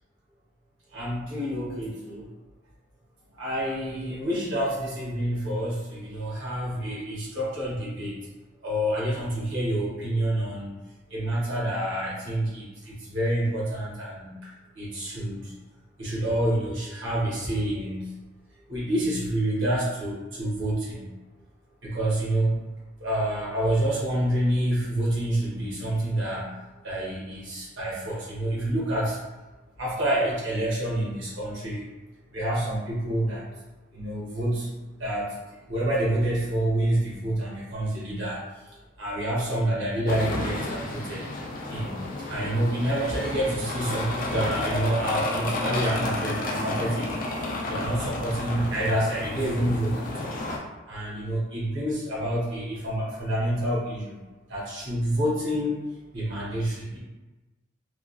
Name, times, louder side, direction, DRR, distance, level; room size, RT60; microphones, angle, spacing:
voice 1, 0.9-2.3 3.3-8.2 8.6-10.7 11.1-14.5 14.7-15.5 16.0-18.1 18.6-21.1 21.8-22.6 23.0-29.2 29.8-31.9 32.3-33.6 33.9-38.4 38.7-41.2 41.7-47.1 47.7-50.3 50.9-54.2 54.5-55.8 56.1-57.0, right 1 dB, 75° right, -6 dB, 1.1 m, -28 dB
sound 1, 40.1-50.6, left 2 dB, 45° left, 0.4 m, -31 dB
3.0 x 2.3 x 2.4 m, 1.1 s
head